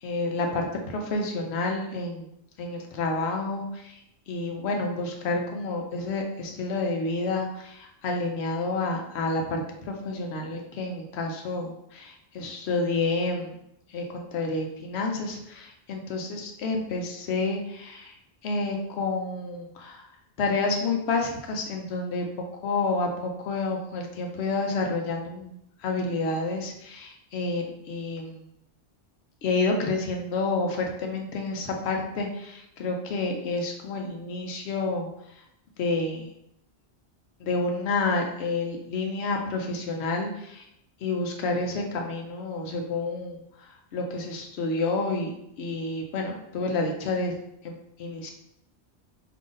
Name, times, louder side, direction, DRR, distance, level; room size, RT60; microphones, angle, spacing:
voice 1, 0.0-2.3 2.6-4.0 4.3-13.6 13.9-18.1 18.4-20.1 20.4-22.3 22.6-28.5 29.4-35.1 35.8-36.3 37.4-40.7 41.0-47.4 47.6-48.3, left 3 dB, 75° left, 2 dB, 0.9 m, -29 dB
3.8 x 2.8 x 3.8 m, 0.78 s
omnidirectional pair, 1.1 m